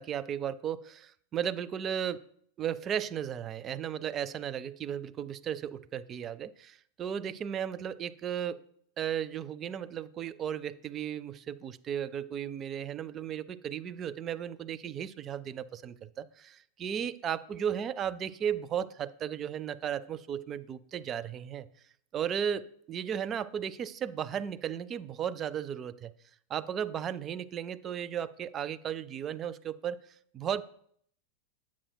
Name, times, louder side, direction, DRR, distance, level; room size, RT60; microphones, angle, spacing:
voice 1, 0.0-2.2 2.6-8.6 9.0-21.7 22.1-26.1 26.5-30.0 30.3-30.6, right 9 dB, 30° right, 13 dB, 0.3 m, -35 dB
8.6 x 7.2 x 2.2 m, 0.64 s
figure-of-eight pair, 90°, 0 cm